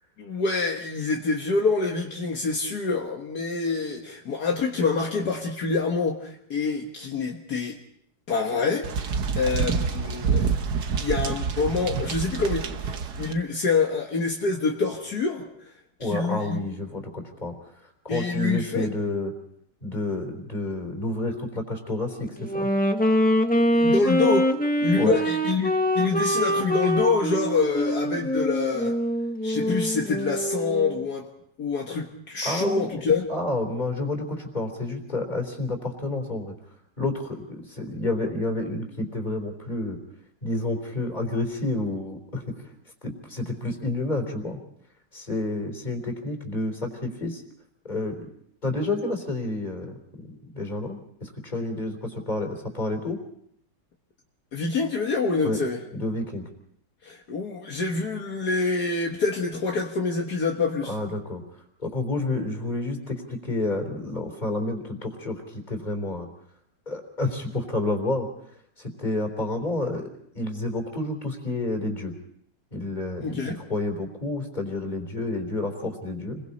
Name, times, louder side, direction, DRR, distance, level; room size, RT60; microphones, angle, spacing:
voice 1, 0.2-7.8 8.3-10.5 11.0-15.5 16.0-16.6 18.1-18.9 23.7-24.5 24.8-29.0 29.4-31.3 31.6-33.2 54.5-55.8 57.0-60.9 73.2-73.6, left 4 dB, 65° left, 0 dB, 2.0 m, -26 dB
sound 1, 8.8-13.3, right 5 dB, 70° right, 1.7 m, -27 dB
voice 2, 16.0-17.7 18.0-19.3 19.8-22.7 24.9-25.2 32.4-33.0 33.3-36.5 37.0-40.0 40.4-42.7 43.0-44.6 45.1-47.4 47.8-48.2 48.6-53.2 55.4-55.6 55.9-56.5 60.9-61.4 61.8-66.3 66.9-68.3 68.8-70.1 70.3-72.1 72.7-76.4, left 2 dB, 25° left, 3 dB, 3.7 m, -29 dB
Wind instrument woodwind instrument, 22.4-31.1, equal, 5° left, 1.1 m, -24 dB
29.5 x 22.0 x 4.2 m, 0.69 s
omnidirectional pair, 1.8 m